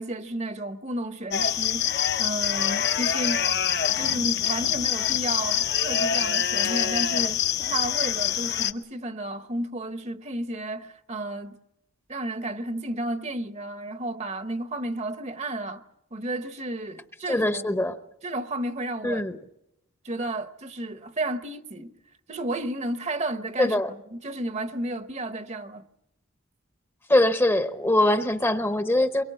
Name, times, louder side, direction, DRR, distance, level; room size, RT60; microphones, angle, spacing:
voice 1, 0.0-3.4 4.0-11.6 12.1-15.8 16.1-17.7 18.2-19.2 20.0-21.9 22.3-23.8 24.1-25.9, right 1 dB, 35° right, 1.0 m, -32 dB
sound 1, 1.3-8.7, left 9 dB, 55° left, 1.0 m, -25 dB
voice 2, 17.3-18.0 19.0-19.4 23.6-23.9 27.1-29.2, left 1 dB, 10° left, 0.9 m, -22 dB
23.0 x 23.0 x 7.9 m
head